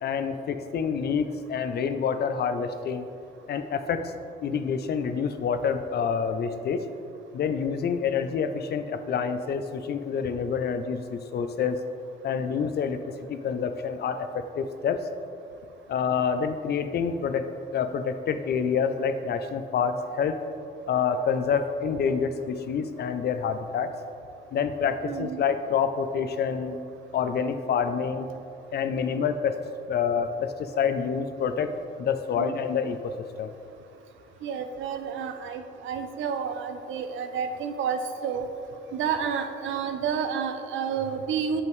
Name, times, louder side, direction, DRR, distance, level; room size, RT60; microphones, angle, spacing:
voice 1, 0.0-3.1 3.5-4.1 4.4-6.8 7.3-11.8 12.2-13.0 13.3-15.1 15.9-20.4 20.9-23.9 24.5-26.8 27.1-28.3 28.7-29.6 29.9-31.7 32.0-33.5, left 6 dB, 55° left, 9 dB, 0.5 m, -27 dB
voice 2, 25.0-25.4 32.4-32.6 34.4-38.5 38.9-41.6, right 7 dB, 75° right, 7 dB, 0.6 m, -30 dB
7.0 x 5.6 x 3.1 m, 2.5 s
cardioid pair, 90°, 20 cm